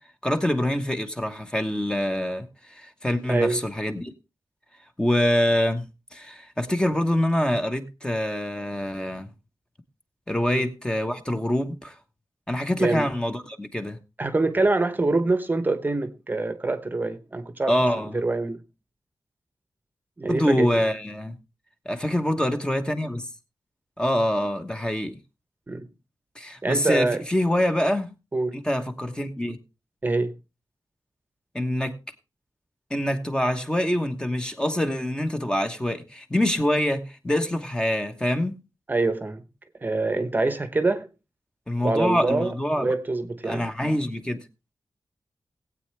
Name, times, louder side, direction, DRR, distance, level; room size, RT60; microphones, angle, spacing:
voice 1, 0.2-4.1 5.0-5.8 6.1-9.3 10.3-12.0 12.5-14.0 17.7-18.2 20.3-21.4 21.8-23.2 24.0-25.2 26.3-28.1 28.5-29.6 31.5-32.0 32.9-38.6 41.7-42.9 43.4-44.4, left 1 dB, 10° left, 1.1 m, -25 dB
voice 2, 3.3-3.6 10.5-10.7 12.8-13.1 14.2-17.7 18.1-18.6 20.2-20.8 25.7-25.9 26.6-27.2 28.3-28.6 30.0-30.3 38.9-39.4 39.8-41.1 41.8-43.7, right 2 dB, 25° right, 0.9 m, -25 dB
19.0 x 8.5 x 3.3 m
wide cardioid pair, 140°, 7 cm